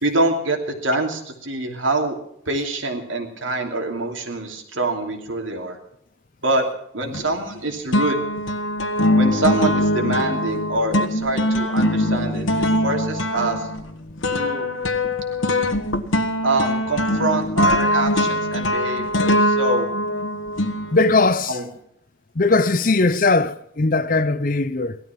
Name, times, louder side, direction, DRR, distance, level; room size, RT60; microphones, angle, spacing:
voice 1, 0.0-2.2 2.5-5.8 6.4-6.6 6.9-8.2 9.1-12.5 12.8-13.7 14.3-14.7 16.4-19.9 21.5-21.7, right 2 dB, 90° right, 2.8 m, -25 dB
sound 1, 7.1-7.6 7.9-21.3, left 1 dB, 90° left, 1.4 m, -22 dB
voice 2, 20.9-21.6 22.4-25.0, left 3 dB, 45° left, 0.7 m, -19 dB
17.0 x 13.0 x 6.0 m
head